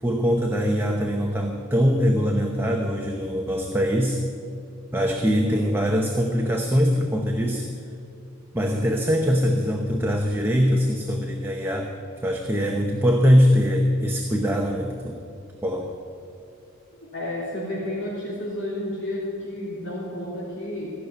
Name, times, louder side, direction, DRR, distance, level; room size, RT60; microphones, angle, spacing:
voice 1, 0.0-4.2 4.9-7.7 8.5-12.0 12.2-15.2 15.6-16.0, equal, 10° right, 1 dB, 0.8 m, -22 dB
voice 2, 17.1-20.9, left 1 dB, 55° left, -5 dB, 3.2 m, -31 dB
15.0 x 6.6 x 9.9 m, 2.4 s
head